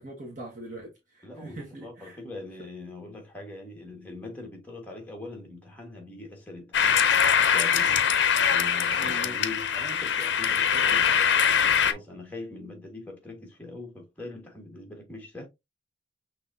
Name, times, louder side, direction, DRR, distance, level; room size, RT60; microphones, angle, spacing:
voice 1, 0.0-2.2 8.9-9.4, right 1 dB, 40° right, 1.3 m, -42 dB
voice 2, 1.2-7.0 7.5-8.1 8.3-15.5, left 2 dB, 10° left, 1.4 m, -42 dB
sound 1, 6.7-11.9, left 7 dB, 65° left, 0.5 m, -23 dB
6.0 x 3.0 x 2.6 m
head